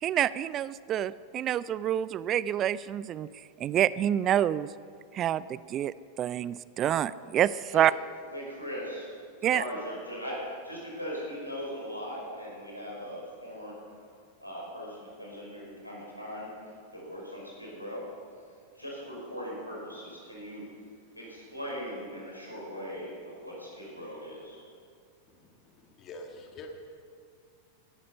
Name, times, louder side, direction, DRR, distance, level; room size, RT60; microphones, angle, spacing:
voice 1, 0.0-3.3 3.6-4.7 5.1-7.9 9.4-9.6, right 11 dB, 30° right, 19 dB, 0.3 m, -27 dB
voice 2, 8.3-9.1 9.4-14.0 14.4-18.1 18.8-20.7 21.2-24.7, equal, 90° left, -4 dB, 5.4 m, -39 dB
voice 3, 25.3-26.7, left 2 dB, 30° left, 3 dB, 1.7 m, -46 dB
18.0 x 13.5 x 5.7 m, 2.2 s
figure-of-eight pair, 90°, 0 cm